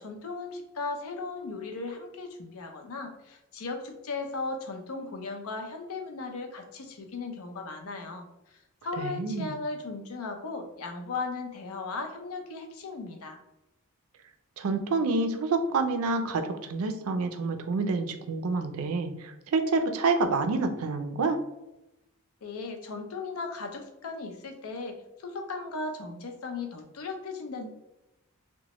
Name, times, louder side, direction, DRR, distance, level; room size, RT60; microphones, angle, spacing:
voice 1, 0.0-13.4 22.4-27.7, left 3 dB, 80° left, 4 dB, 0.5 m, -37 dB
voice 2, 9.0-9.5 14.6-21.4, right 3 dB, 75° right, 7 dB, 0.4 m, -28 dB
2.9 x 2.1 x 2.9 m, 0.92 s
head